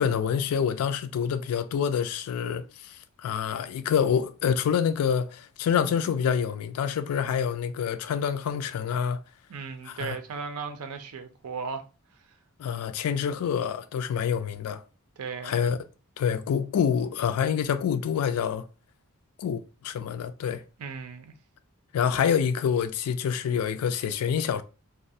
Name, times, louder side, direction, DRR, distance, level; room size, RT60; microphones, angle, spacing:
voice 1, 0.0-3.0 3.2-9.2 9.9-10.2 12.6-14.8 15.4-15.8 16.2-18.7 19.4-20.6 21.9-24.6, left 7 dB, 80° left, 0.3 m, -27 dB
voice 2, 9.5-11.8 15.2-15.6 20.8-21.3, right 5 dB, 85° right, 0.5 m, -36 dB
2.4 x 2.1 x 2.6 m
head